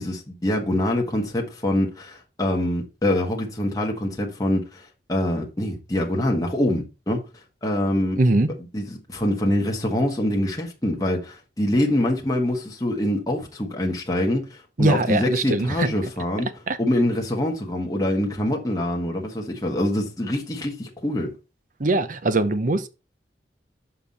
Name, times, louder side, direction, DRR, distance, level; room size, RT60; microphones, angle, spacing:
voice 1, 0.0-7.2 7.6-8.2 8.7-16.5 16.8-21.3, left 1 dB, 20° left, 1.4 m, -25 dB
voice 2, 8.2-8.5 14.8-15.9 16.7-16.8 21.8-22.9, right 2 dB, 50° right, 0.7 m, -21 dB
7.0 x 5.6 x 4.2 m
head